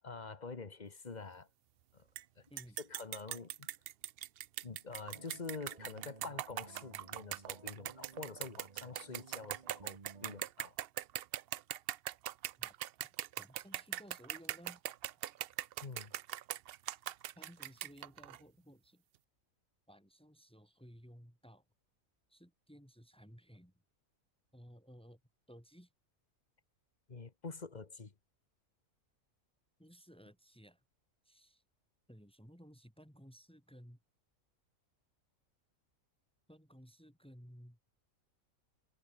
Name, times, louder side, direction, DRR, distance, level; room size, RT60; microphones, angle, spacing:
voice 1, 0.0-1.5 1.9-2.0 2.4-2.5 2.8-3.7 4.6-10.8 15.8-16.1 27.1-28.1, left 4 dB, 35° left, 1.4 m, -47 dB
sound 1, 2.2-2.3 2.6-18.4, right 12 dB, 65° right, 0.6 m, -41 dB
sound 2, 5.1-10.5, right 4 dB, 30° right, 1.2 m, -57 dB
voice 2, 13.4-14.8 17.3-19.0 19.9-21.6 22.3-23.7 24.5-25.2 25.5-25.9 29.8-30.8 31.2-31.6 32.1-34.0 36.5-37.8, equal, 5° left, 6.7 m, -57 dB
omnidirectional pair, 1.4 m